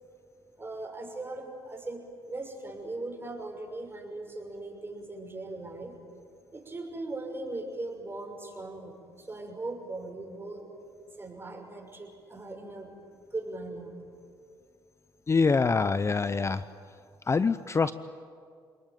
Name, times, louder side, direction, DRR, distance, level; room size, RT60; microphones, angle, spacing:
voice 1, 0.6-5.9 6.5-10.6 11.2-12.9 13.3-13.9, right 2 dB, 25° right, 3 dB, 6.2 m, -39 dB
voice 2, 15.3-16.6 17.3-17.9, left 4 dB, 30° left, 13 dB, 0.7 m, -25 dB
28.5 x 20.5 x 9.3 m, 2.2 s
cardioid pair, 80°, 10 cm